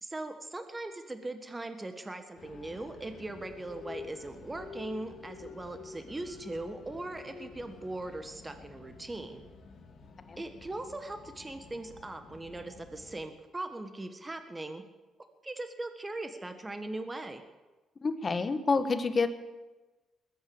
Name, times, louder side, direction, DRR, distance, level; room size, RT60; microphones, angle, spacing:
voice 1, 0.0-9.4 10.4-14.8 15.4-17.4, right 2 dB, 20° right, 8 dB, 1.4 m, -40 dB
sound 1, 2.4-13.3, left 5 dB, 55° left, 2.6 m, -49 dB
voice 2, 18.0-19.3, left 4 dB, 35° left, 10 dB, 1.3 m, -28 dB
21.0 x 9.4 x 7.0 m, 1.2 s
cardioid pair, 90°, 0 cm